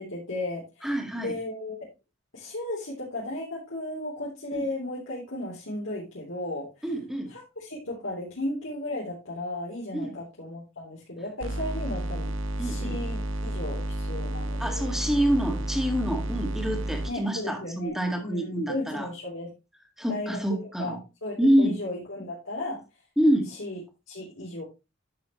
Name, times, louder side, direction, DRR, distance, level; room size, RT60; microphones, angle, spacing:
voice 1, 0.0-1.9 2.3-6.7 7.3-14.9 17.1-17.9 18.2-19.5 20.1-22.8 23.5-23.8 24.1-24.6, left 1 dB, 80° left, -6 dB, 3.4 m, -35 dB
voice 2, 0.8-1.3 4.5-4.6 6.8-7.3 9.9-10.1 12.6-13.0 14.6-19.1 20.0-21.0 21.4-21.8 23.2-23.5, equal, ahead, 4 dB, 1.9 m, -26 dB
sound 1, 11.4-17.1, right 1 dB, 85° right, 1.3 m, -31 dB
11.0 x 6.7 x 3.1 m, 0.26 s
head